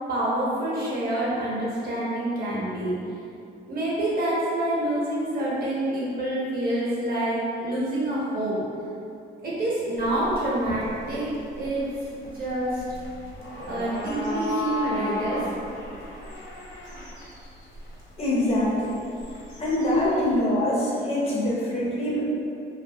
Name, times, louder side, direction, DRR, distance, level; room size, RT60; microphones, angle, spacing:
voice 1, 0.1-2.9 3.6-8.6 9.4-11.9 12.3-12.8 13.7-15.5, right 1 dB, 50° right, -7 dB, 1.0 m, -27 dB
sound 1, 10.0-20.4, left 1 dB, 75° left, 0.9 m, -36 dB
voice 2, 18.2-19.0 19.6-22.2, left 1 dB, 30° left, -6 dB, 0.7 m, -24 dB
2.7 x 2.5 x 2.7 m, 2.6 s
cardioid pair, 90°, 20 cm